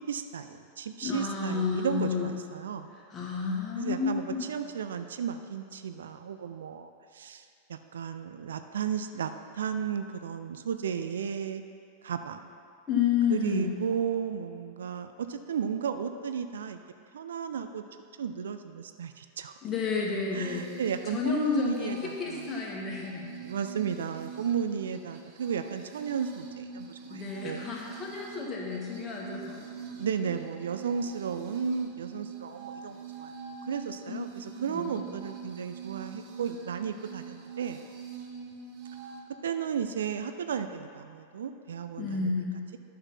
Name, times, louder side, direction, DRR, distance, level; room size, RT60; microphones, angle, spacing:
voice 1, 0.1-2.9 3.8-11.6 12.0-12.4 13.3-16.8 17.1-17.8 18.2-19.5 20.3-22.5 23.4-27.7 29.3-33.3 33.7-37.8 39.4-42.3, right 7 dB, 65° right, 9 dB, 0.4 m, -34 dB
voice 2, 1.0-2.3 3.1-4.5 12.9-13.7 19.6-20.7 21.1-23.3 27.1-29.6 34.1-34.9 42.0-42.6, left 6 dB, 25° left, -2 dB, 2.0 m, -31 dB
sound 1, 20.3-39.2, right 7 dB, 40° right, 1.1 m, -44 dB
11.0 x 5.8 x 5.7 m, 2.3 s
figure-of-eight pair, 90°, 0 cm